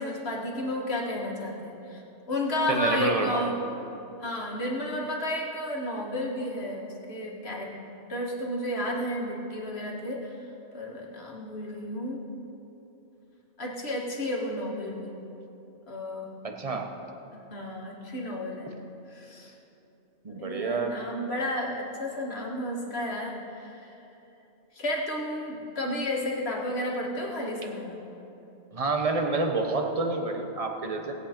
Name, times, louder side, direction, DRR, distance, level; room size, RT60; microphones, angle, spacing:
voice 1, 0.0-2.0 2.3-3.5 4.2-7.8 8.1-10.3 10.7-12.2 13.6-15.1 15.9-16.3 17.3-18.7 19.1-19.5 20.3-23.9 24.8-28.0, left 1 dB, 60° left, -2 dB, 2.0 m, -32 dB
voice 2, 2.7-3.4 16.4-16.9 20.2-21.0 28.7-31.1, right 3 dB, 35° right, 4 dB, 1.0 m, -28 dB
20.0 x 8.2 x 4.4 m, 3.0 s
omnidirectional pair, 1.2 m